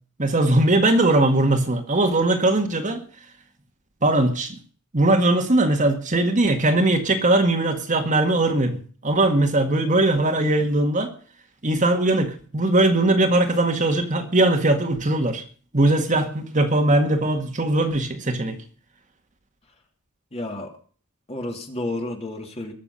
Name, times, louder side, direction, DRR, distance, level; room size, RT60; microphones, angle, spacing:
voice 1, 0.2-3.0 4.0-4.6 4.9-11.1 11.6-15.4 15.7-18.6, right 2 dB, 35° right, 1.8 m, -20 dB
voice 2, 20.3-20.7 21.3-22.7, left 1 dB, 30° left, 2.8 m, -31 dB
20.5 x 7.0 x 5.7 m
head